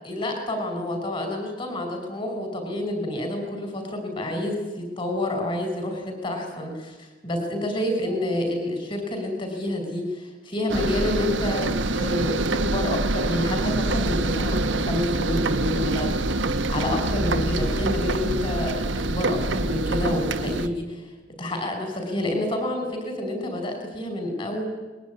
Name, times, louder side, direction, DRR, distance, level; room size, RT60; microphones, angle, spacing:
voice 1, 0.0-16.4 16.7-21.0 21.4-24.6, left 1 dB, 25° left, 5 dB, 5.6 m, -28 dB
sound 1, 10.7-20.7, right 2 dB, 85° right, 1.4 m, -25 dB
23.0 x 21.5 x 9.6 m, 1.2 s
head